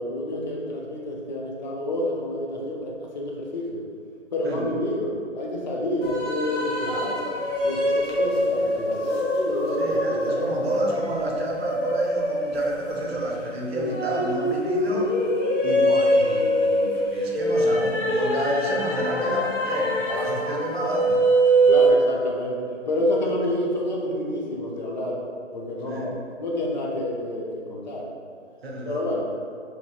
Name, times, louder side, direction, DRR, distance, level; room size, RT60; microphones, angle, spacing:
voice 1, 0.0-3.8 4.3-7.3 7.6-10.5 21.6-25.2 25.5-28.1 28.9-29.2, left 1 dB, 40° left, -2 dB, 0.5 m, -28 dB
sound 1, 6.0-21.9, right 1 dB, 80° left, 0.8 m, -24 dB
voice 2, 9.8-15.2 15.6-21.2 25.9-26.1 28.6-29.1, right 1 dB, 55° right, -1 dB, 0.7 m, -29 dB
3.5 x 3.0 x 2.4 m, 2.2 s
figure-of-eight pair, 145°, 36 cm